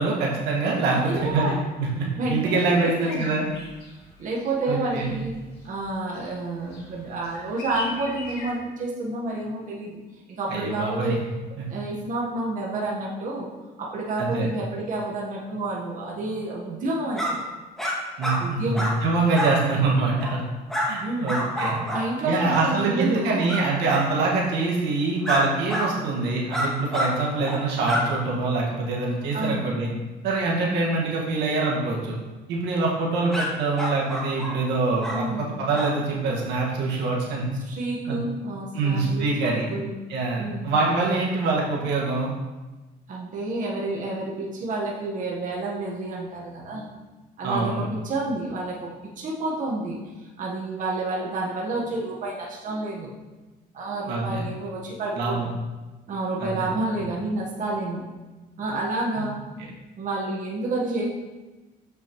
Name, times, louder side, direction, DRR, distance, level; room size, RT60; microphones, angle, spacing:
voice 1, 0.0-1.4 1.8-3.5 4.7-5.1 10.5-11.1 14.2-14.5 18.2-20.4 20.9-21.8 22.2-29.9 30.2-32.2 32.5-35.3 35.6-37.4 38.1-38.2 38.7-39.7 40.1-42.3 47.4-47.9 54.1-54.4 55.2-55.5 56.4-56.7 59.2-59.3, right 3 dB, 85° right, -3 dB, 1.7 m, -24 dB
voice 2, 0.9-1.6 2.2-3.4 4.2-5.3 5.6-10.0 10.3-11.2 11.7-13.5 13.8-17.4 18.2-18.9 21.0-21.4 21.9-23.6 29.3-29.7 30.7-30.9 35.1-35.6 37.6-39.3 39.7-39.9 40.4-40.7 43.1-46.9 47.4-48.9 49.2-53.1 53.7-55.4 56.1-58.0 58.6-59.4 60.0-61.0, right 2 dB, 50° right, -3 dB, 1.3 m, -29 dB
sound 1, 2.8-8.5, left 2 dB, 85° left, 2.0 m, -42 dB
sound 2, 17.1-17.3 17.8-17.9 18.2-18.4 18.7-18.9 19.3-19.5 20.2-20.4 20.7-20.9 21.3-22.0 22.5-22.7 23.5-23.6 23.9-24.1 25.2-25.4 25.7-25.9 26.5-27.1 27.4-27.6 27.8-28.0 33.3-33.5 33.8-34.5 35.0-35.2 35.7-35.9, equal, ahead, 1.7 m, -27 dB
7.2 x 5.9 x 3.1 m, 1.2 s
cardioid pair, 110°, 17 cm